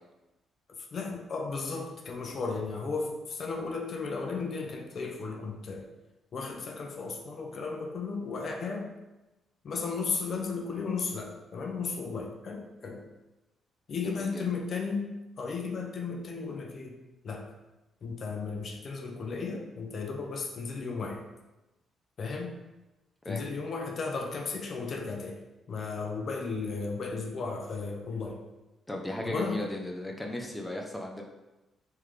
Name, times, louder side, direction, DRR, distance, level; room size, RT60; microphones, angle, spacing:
voice 1, 0.9-5.9 6.3-8.9 9.6-13.0 13.9-15.1 15.4-17.0 17.2-17.4 18.0-21.2 22.2-22.6 23.3-25.4 25.7-28.4 29.3-29.6, left 4 dB, 50° left, 1 dB, 0.6 m, -34 dB
voice 2, 14.0-14.4 23.2-23.4 28.9-31.2, left 1 dB, 10° left, 0 dB, 0.5 m, -36 dB
3.6 x 3.2 x 3.2 m, 1.0 s
cardioid pair, 90°, 0 cm